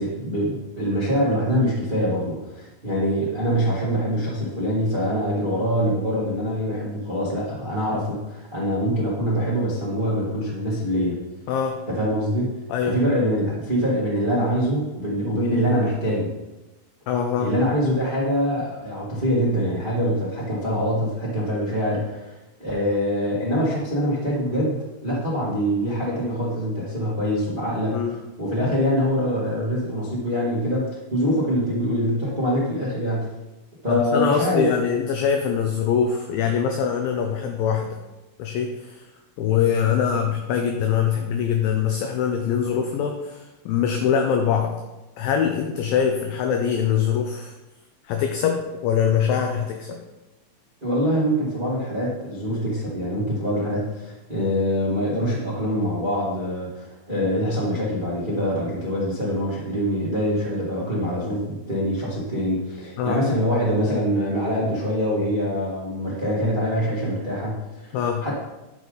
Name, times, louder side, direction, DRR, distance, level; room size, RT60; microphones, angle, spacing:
voice 1, 0.0-11.2 11.9-12.5 12.8-16.3 17.4-33.3 33.8-34.6 50.8-68.3, equal, 80° right, -8 dB, 0.4 m, -24 dB
voice 2, 11.5-11.8 12.7-13.0 17.1-17.5 27.9-28.1 28.6-28.7 33.9-38.0 38.4-39.0 39.4-44.7 45.2-47.5 48.1-50.0 63.0-63.2 67.9-68.3, left 7 dB, 80° left, 4 dB, 2.1 m, -23 dB
10.5 x 4.9 x 3.9 m, 1.0 s
omnidirectional pair, 4.6 m